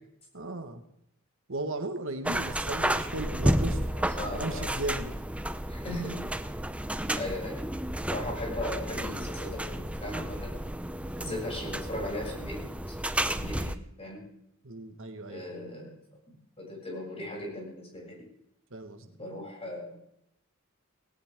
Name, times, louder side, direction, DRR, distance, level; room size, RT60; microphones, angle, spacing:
voice 1, 0.3-0.8 1.5-3.9 4.4-5.1 11.3-11.4 14.6-15.4 18.7-19.1, right 2 dB, 65° right, 7 dB, 1.6 m, -36 dB
sound 1, 2.2-13.8, right 1 dB, 5° right, 0.7 m, -32 dB
voice 2, 4.2-4.7 5.7-6.2 7.1-7.6 8.1-10.5 11.2-12.6 12.9-14.2 15.3-16.0 16.3-18.3 19.2-20.0, left 1 dB, 30° left, -2 dB, 7.8 m, -38 dB
19.0 x 17.5 x 3.7 m, 0.77 s
head